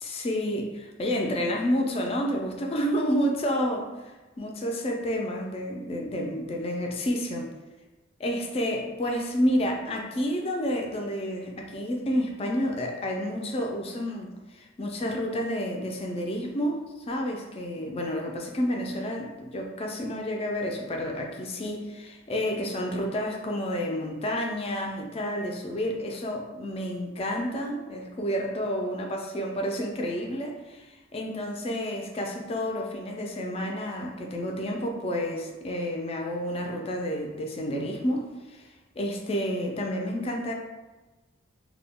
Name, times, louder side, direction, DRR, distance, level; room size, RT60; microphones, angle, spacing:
voice 1, 0.0-3.9 4.4-7.5 8.2-38.7 39.0-40.5, equal, 30° left, 1 dB, 0.3 m, -30 dB
2.2 x 2.1 x 3.5 m, 1.2 s
head